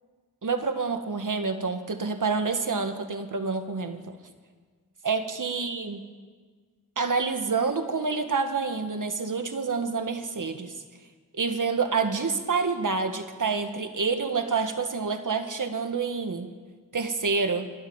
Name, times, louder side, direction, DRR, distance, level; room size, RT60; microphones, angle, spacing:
voice 1, 0.4-4.2 5.0-6.0 7.0-10.7 11.3-16.5 16.9-17.7, right 4 dB, 70° right, 7 dB, 1.8 m, -28 dB
30.0 x 12.5 x 7.3 m, 1.5 s
wide cardioid pair, 70°, 33 cm